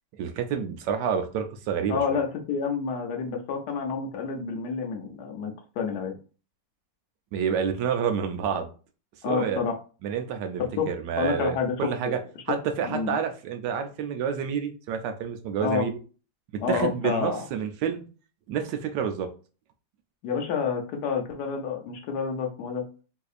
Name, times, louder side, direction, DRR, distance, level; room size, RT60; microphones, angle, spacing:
voice 1, 0.2-2.2 7.3-8.7 9.2-9.6 10.0-12.2 12.5-15.9 16.5-18.0 18.5-19.3, right 7 dB, 80° right, 7 dB, 1.2 m, -28 dB
voice 2, 1.9-6.1 9.2-9.8 10.8-10.9 11.2-12.2 12.9-13.2 15.6-15.8 16.6-17.5 20.2-22.8, left 6 dB, 75° left, 3 dB, 1.2 m, -29 dB
4.1 x 2.7 x 2.4 m, 0.37 s
omnidirectional pair, 1.9 m